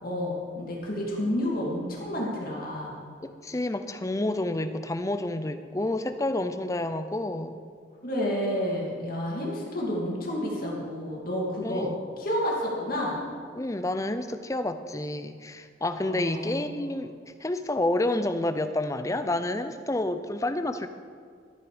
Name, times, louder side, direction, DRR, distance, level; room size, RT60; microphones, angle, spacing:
voice 1, 0.0-2.9 8.0-11.9 12.2-13.2 16.0-16.9, equal, 45° left, -3 dB, 2.5 m, -30 dB
voice 2, 3.2-7.6 11.6-12.0 13.5-17.1 17.4-20.9, left 1 dB, 15° left, 9 dB, 0.5 m, -29 dB
13.5 x 9.5 x 5.0 m, 2.2 s
head